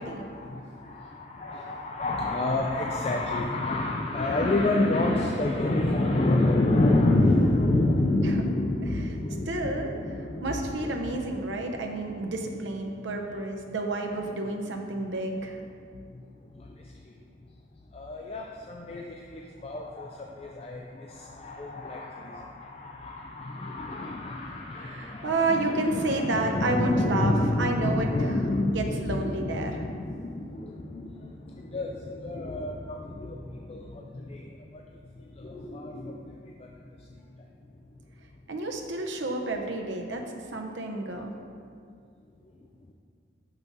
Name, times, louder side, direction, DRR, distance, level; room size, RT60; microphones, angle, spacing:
voice 1, 0.0-11.2 13.3-13.4 17.9-34.5 35.4-36.1, left 2 dB, 30° left, 0 dB, 0.3 m, -28 dB
voice 2, 9.5-9.9 10.4-15.5 24.8-28.1 28.6-29.8 38.5-40.2 40.5-41.3, right 2 dB, 80° right, 2 dB, 0.7 m, -30 dB
6.1 x 5.5 x 4.0 m, 2.2 s
head